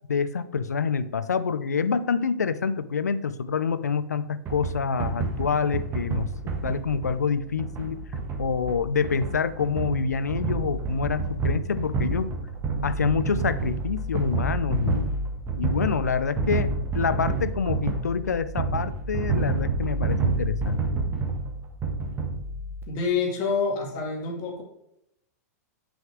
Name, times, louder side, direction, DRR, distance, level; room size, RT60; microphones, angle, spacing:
voice 1, 0.1-6.3 6.6-8.0 8.4-12.4 12.8-15.1 15.6-21.0, left 6 dB, 90° left, 14 dB, 0.5 m, -27 dB
sound 1, 4.5-22.8, right 3 dB, 30° right, 1.6 m, -29 dB
voice 2, 22.9-24.6, left 5 dB, 45° left, 1 dB, 2.3 m, -27 dB
6.3 x 5.7 x 4.6 m, 0.79 s
hypercardioid pair, 105°, 9 cm